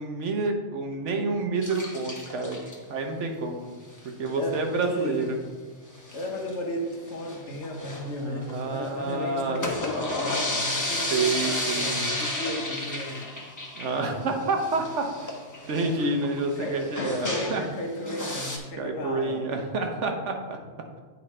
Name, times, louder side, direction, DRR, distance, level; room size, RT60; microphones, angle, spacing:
voice 1, 0.0-2.6 2.9-3.7 4.2-5.4 8.2-9.6 11.1-12.0 13.7-15.3 15.7-17.6 18.8-20.6, right 3 dB, 85° right, 4 dB, 1.2 m, -28 dB
sound 1, 1.6-2.8 4.0-4.3 4.5-4.6 4.8-4.9 5.2-5.3 5.9-6.5 7.0-8.9 9.4-17.7 18.1-18.6, left 1 dB, 15° left, 0.9 m, -32 dB
voice 2, 4.4-5.3 6.1-13.2 15.6-16.0 16.6-19.5, left 1 dB, 80° left, 2 dB, 1.3 m, -34 dB
8.6 x 5.0 x 3.2 m, 1.3 s
omnidirectional pair, 1.2 m